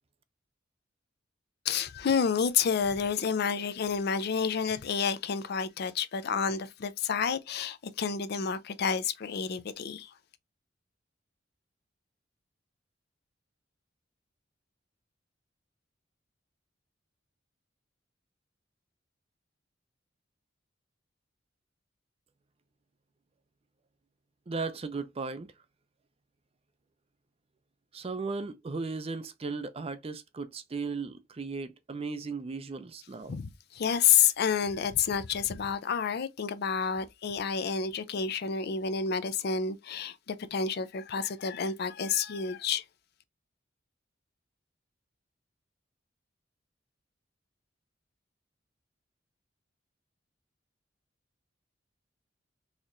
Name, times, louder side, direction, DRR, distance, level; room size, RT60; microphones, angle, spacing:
voice 1, 1.6-10.1 33.3-42.8, left 7 dB, 55° left, 0.4 m, -29 dB
voice 2, 24.5-25.5 27.9-33.4, right 4 dB, 30° right, 0.4 m, -36 dB
4.1 x 3.0 x 2.5 m
head